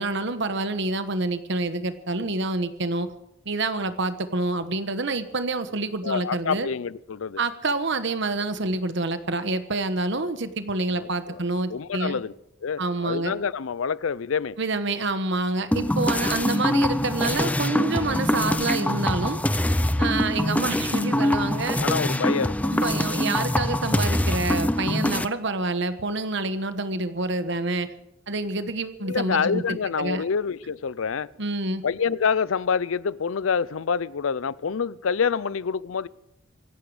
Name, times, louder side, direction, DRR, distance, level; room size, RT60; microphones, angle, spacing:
voice 1, 0.0-3.1 3.4-6.7 7.4-12.2 12.8-13.4 14.6-19.4 20.0-21.8 22.7-27.9 28.3-30.2 31.4-31.8, right 2 dB, 60° right, 1.2 m, -27 dB
voice 2, 6.0-7.4 11.0-12.3 12.6-14.6 21.8-22.7 29.0-31.3 31.8-36.1, left 6 dB, 80° left, 0.5 m, -27 dB
sound 1, 15.7-25.3, left 1 dB, 5° left, 0.5 m, -24 dB
25.5 x 11.5 x 4.9 m
head